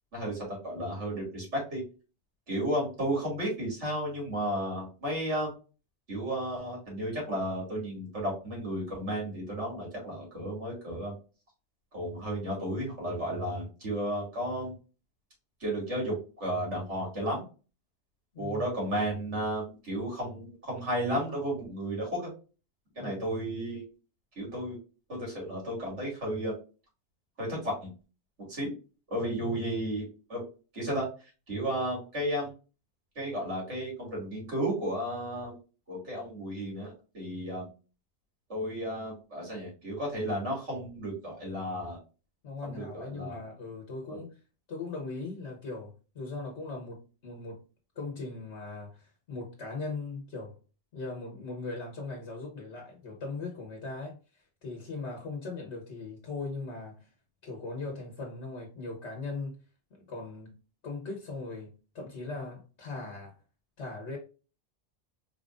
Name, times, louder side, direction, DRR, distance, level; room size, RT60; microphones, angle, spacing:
voice 1, 0.1-1.8 2.5-5.5 6.1-11.2 11.9-14.7 15.6-17.4 18.4-22.3 22.9-23.8 24.4-24.8 25.1-26.6 27.4-27.9 28.4-28.7 29.1-30.4 30.7-31.1 31.5-32.5 33.1-35.6 35.9-37.7 38.5-42.0 42.6-43.4 44.1-44.2, right 1 dB, 80° right, 2.9 m, -33 dB
voice 2, 29.2-29.6 42.4-44.4 44.7-47.6 47.9-50.6 50.9-57.1 57.4-59.6 59.9-60.5 60.8-63.4 63.8-64.2, left 3 dB, 70° left, 1.5 m, -39 dB
4.6 x 3.6 x 2.5 m
omnidirectional pair, 1.2 m